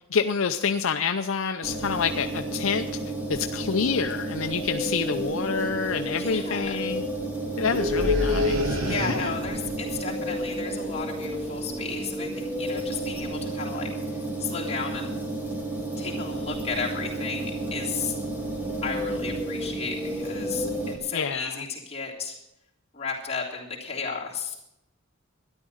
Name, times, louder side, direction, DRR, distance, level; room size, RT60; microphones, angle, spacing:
voice 1, 0.1-2.9 3.3-7.0 7.6-9.3 21.1-21.6, left 5 dB, 75° left, 7 dB, 0.6 m, -27 dB
sound 1, 1.6-21.0, right 1 dB, 10° right, 2.6 m, -32 dB
sound 2, 5.1-5.3 5.6-5.9 7.6-9.6, left 2 dB, 80° right, 2.1 m, -27 dB
voice 2, 6.1-6.9 8.8-15.1 16.0-18.1 18.8-22.4 22.9-24.5, left 5 dB, 30° left, -4 dB, 3.2 m, -34 dB
13.0 x 11.0 x 6.5 m, 0.85 s
head